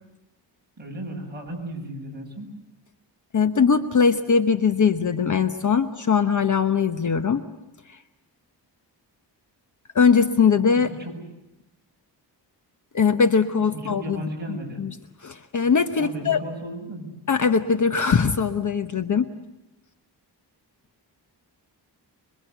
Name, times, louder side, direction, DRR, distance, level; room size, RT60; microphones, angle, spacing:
voice 1, 0.8-2.5 11.0-11.2 13.7-14.8 16.0-17.1, right 1 dB, 20° right, -1 dB, 7.8 m, -35 dB
voice 2, 3.3-7.4 9.9-10.9 12.9-15.0 15.2-16.4 17.3-19.3, left 6 dB, 45° left, 8 dB, 1.0 m, -21 dB
26.0 x 23.0 x 8.1 m, 0.97 s
wide cardioid pair, 180°, 44 cm